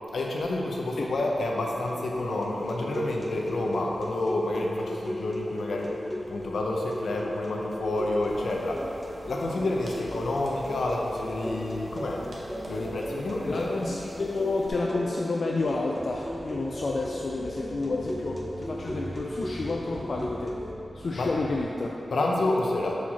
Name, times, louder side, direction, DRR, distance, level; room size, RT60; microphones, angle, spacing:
voice 1, 0.1-6.0 6.3-12.3 12.7-13.7 21.1-21.3 22.1-23.0, left 2 dB, 85° left, -1 dB, 0.7 m, -29 dB
sound 1, 1.6-20.7, left 1 dB, 10° left, 0.8 m, -37 dB
sound 2, 8.3-14.7, right 1 dB, 65° right, 1.1 m, -46 dB
voice 2, 13.4-20.6 20.9-22.0, left 3 dB, 65° left, -1 dB, 0.4 m, -30 dB
sound 3, 16.0-21.6, right 1 dB, 40° right, 1.0 m, -42 dB
5.8 x 4.8 x 4.1 m, 3.0 s
cardioid pair, 65°, 0 cm